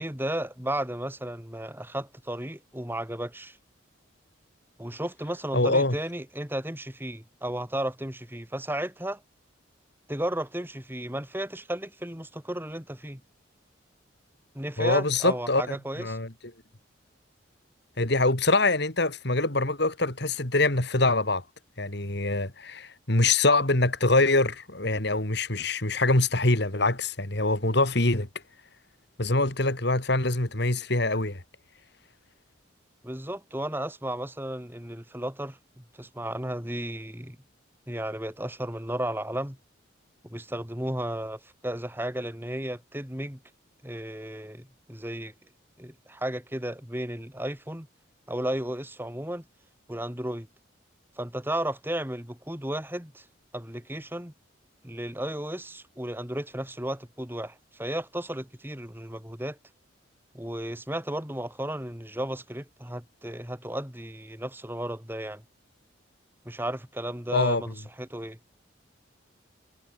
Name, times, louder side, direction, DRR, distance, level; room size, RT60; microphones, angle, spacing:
voice 1, 0.0-3.6 4.8-9.2 10.1-13.2 14.5-16.2 33.0-37.4 37.9-39.6 40.2-43.4 43.8-45.3 45.8-47.9 48.3-49.4 49.9-50.5 51.2-53.2 53.5-54.3 54.8-59.6 60.3-65.4 66.4-68.4, right 1 dB, 10° right, 3.2 m, -34 dB
voice 2, 5.5-6.0 14.8-16.3 18.0-21.4 21.8-28.3 29.2-31.4 67.3-67.6, left 2 dB, 55° left, 3.0 m, -24 dB
head